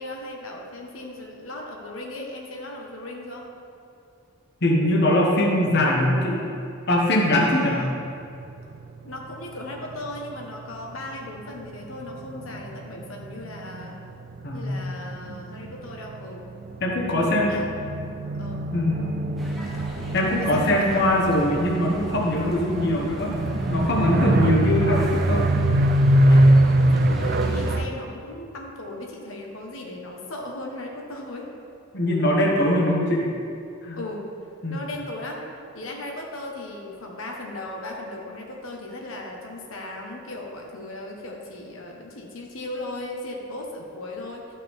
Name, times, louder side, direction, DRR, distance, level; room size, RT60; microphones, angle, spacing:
voice 1, 0.0-3.5 7.3-7.9 9.0-14.0 14.5-16.5 17.1-17.7 18.3-18.7 20.4-21.1 22.4-22.6 26.9-31.5 33.9-34.3 34.7-44.5, left 1 dB, 85° left, 0 dB, 1.2 m, -37 dB
voice 2, 4.6-6.4 6.9-7.8 14.4-14.8 16.8-17.5 18.7-19.1 20.1-23.4 23.7-25.6 26.3-26.4 31.9-33.3 33.8-34.0 34.6-34.8, left 1 dB, 55° left, -2 dB, 1.2 m, -22 dB
sound 1, 8.0-11.1 11.4-27.9, right 1 dB, 50° right, 0.4 m, -24 dB
sound 2, 19.4-27.8, equal, ahead, 1.2 m, -38 dB
12.5 x 5.7 x 3.6 m, 2.5 s
head